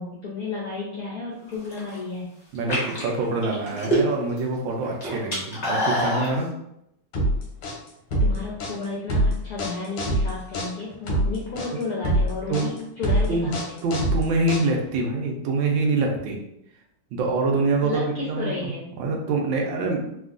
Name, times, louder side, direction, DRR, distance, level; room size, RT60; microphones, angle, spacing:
voice 1, 0.0-2.4 8.2-13.8 17.8-18.9, left 3 dB, 70° left, -5 dB, 0.8 m, -32 dB
sound 1, 1.5-2.0 2.5-4.4 4.7-6.3, equal, 50° left, 0.4 m, -25 dB
voice 2, 2.5-6.5 12.5-12.7 13.3-13.5 13.8-16.4 17.1-18.7 19.0-20.1, right 3 dB, 75° right, 1 dB, 1.2 m, -25 dB
sound 2, 7.1-15.0, equal, 90° left, 1.6 m, -24 dB
3.5 x 2.3 x 2.4 m, 0.80 s
omnidirectional pair, 2.3 m